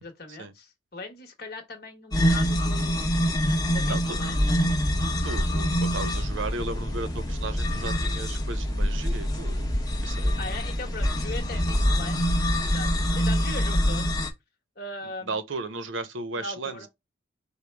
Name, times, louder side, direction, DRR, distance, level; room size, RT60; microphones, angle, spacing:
voice 1, 0.0-3.0 3.7-4.4 10.4-12.2 12.6-14.1 14.8-15.4 16.3-16.9, left 2 dB, 50° left, 1.4 m, -39 dB
sound 1, 2.1-14.3, equal, 20° left, 0.9 m, -25 dB
voice 2, 3.9-4.2 5.2-9.7 10.0-10.4 15.3-16.9, right 3 dB, 80° right, 0.8 m, -35 dB
5.1 x 2.2 x 4.6 m
head